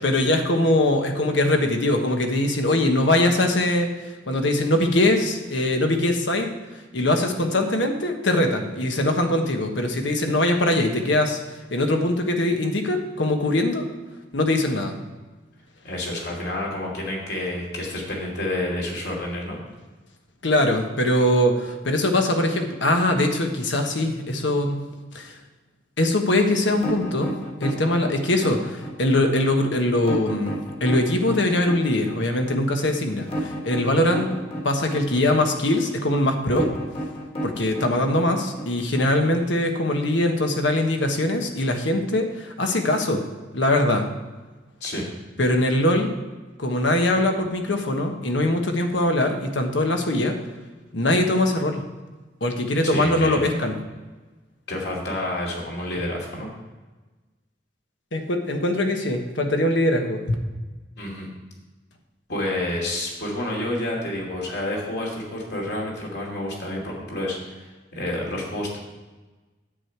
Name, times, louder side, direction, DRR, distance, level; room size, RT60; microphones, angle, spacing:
voice 1, 0.0-3.9 4.3-6.5 6.9-13.8 14.3-14.9 20.4-24.8 25.1-25.4 26.0-34.3 34.6-36.7 37.4-43.2 43.5-44.0 45.4-46.1 46.6-50.4 50.9-51.8 52.4-53.8 58.1-60.2, left 1 dB, 80° left, 4 dB, 1.3 m, -22 dB
voice 2, 15.8-19.6 44.8-45.0 52.8-53.5 54.7-56.5 61.0-61.3 62.3-68.8, left 1 dB, 65° left, -2 dB, 2.8 m, -29 dB
sound 1, 26.7-39.6, right 1 dB, 30° left, 1.7 m, -32 dB
9.9 x 8.3 x 4.6 m, 1.2 s
head